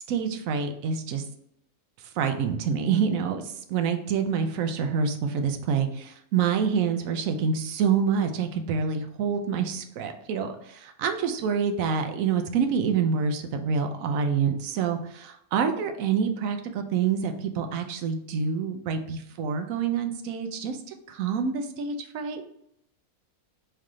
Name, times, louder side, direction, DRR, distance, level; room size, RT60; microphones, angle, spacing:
voice 1, 0.1-1.2 2.2-3.4 3.7-20.8 21.1-22.4, right 6 dB, 75° right, 6 dB, 1.0 m, -27 dB
3.4 x 3.2 x 3.6 m, 0.74 s
omnidirectional pair, 1.5 m